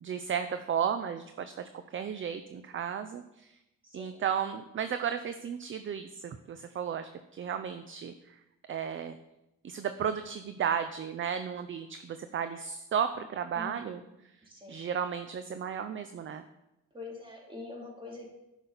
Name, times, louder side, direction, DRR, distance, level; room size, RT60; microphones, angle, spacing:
voice 1, 0.0-3.5 3.9-8.1 8.7-9.2 9.6-14.0 14.7-16.4, right 8 dB, 40° right, 10 dB, 0.6 m, -34 dB
voice 2, 3.8-4.2 13.5-14.1 14.4-15.0 16.9-18.3, left 2 dB, 15° right, -2 dB, 2.8 m, -45 dB
11.0 x 6.2 x 4.0 m, 0.91 s
cardioid pair, 90°, 30 cm